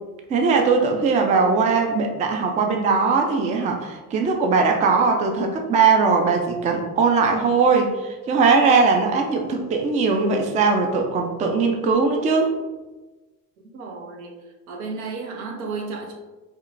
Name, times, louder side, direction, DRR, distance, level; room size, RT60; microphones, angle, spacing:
voice 1, 0.3-12.5, right 4 dB, 20° right, 3 dB, 0.3 m, -20 dB
voice 2, 13.7-14.4 14.7-16.1, right 4 dB, 75° right, 1 dB, 0.8 m, -32 dB
4.4 x 2.1 x 2.5 m, 1.2 s
hypercardioid pair, 70°, 44 cm